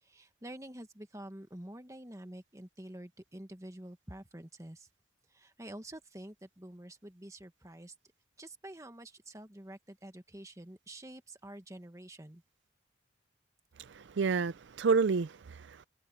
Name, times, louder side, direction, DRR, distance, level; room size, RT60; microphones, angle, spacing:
voice 1, 0.0-4.9 5.3-7.9 8.4-12.4, right 1 dB, 15° right, 1.5 m, -48 dB
voice 2, 13.8-15.9, right 5 dB, 65° right, 0.4 m, -30 dB
head